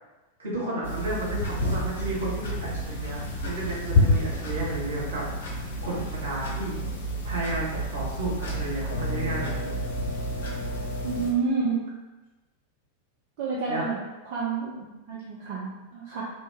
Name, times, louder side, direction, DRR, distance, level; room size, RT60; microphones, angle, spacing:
voice 1, 0.4-6.8 7.2-9.7 13.7-13.9, right 1 dB, 65° right, -5 dB, 1.3 m, -33 dB
sound 1, 0.8-11.3, left 1 dB, 60° left, 0.9 m, -29 dB
voice 2, 11.0-11.8 13.4-14.0 14.3-16.2, right 4 dB, 45° right, -6 dB, 0.7 m, -29 dB
3.1 x 3.0 x 3.5 m, 1.1 s
figure-of-eight pair, 90°, 0 cm